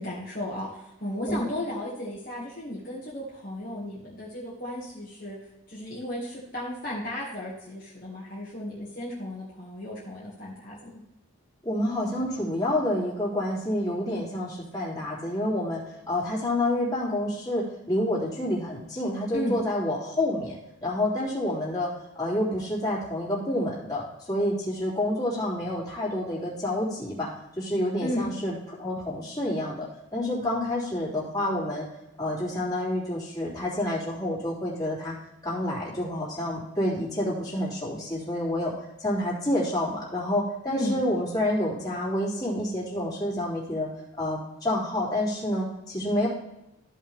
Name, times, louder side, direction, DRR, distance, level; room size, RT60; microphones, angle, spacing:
voice 1, 0.0-5.4 5.7-11.0 19.3-19.6 28.0-28.3 40.7-41.0, left 1 dB, 40° left, -7 dB, 2.0 m, -34 dB
voice 2, 11.6-15.8 16.1-21.9 22.2-27.3 27.6-31.8 32.2-35.1 35.4-38.7 39.0-43.9 44.2-46.3, left 1 dB, 20° left, -7 dB, 3.2 m, -28 dB
14.0 x 5.6 x 3.5 m, 0.91 s
head